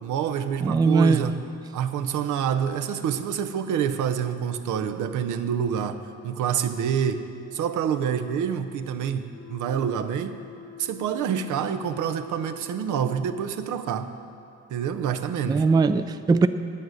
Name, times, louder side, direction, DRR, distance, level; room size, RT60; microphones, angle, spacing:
voice 1, 0.0-1.3 1.7-6.0 6.2-10.4 10.8-14.1 14.7-15.6, right 8 dB, 80° right, 8 dB, 0.7 m, -27 dB
voice 2, 0.6-1.2 15.5-16.5, right 4 dB, 15° right, 11 dB, 0.3 m, -20 dB
sound 1, 9.3-13.5, left 8 dB, 85° left, 1.5 m, -45 dB
9.3 x 8.6 x 6.4 m, 2.6 s
cardioid pair, 90°, 30 cm